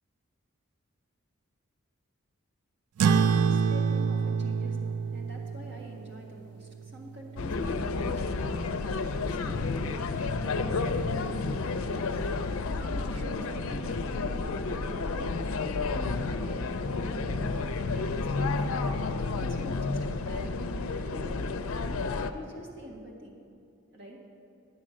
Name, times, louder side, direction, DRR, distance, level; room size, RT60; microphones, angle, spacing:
voice 1, 3.0-10.0 10.4-15.3 15.7-18.8 19.4-21.6 22.1-23.4 23.9-24.2, right 1 dB, 55° right, -1 dB, 1.7 m, -46 dB
sound 1, 3.0-7.8, right 6 dB, 85° right, 0.3 m, -28 dB
sound 2, 7.4-22.3, left 3 dB, 70° left, 0.5 m, -31 dB
10.0 x 7.4 x 6.2 m, 2.5 s
head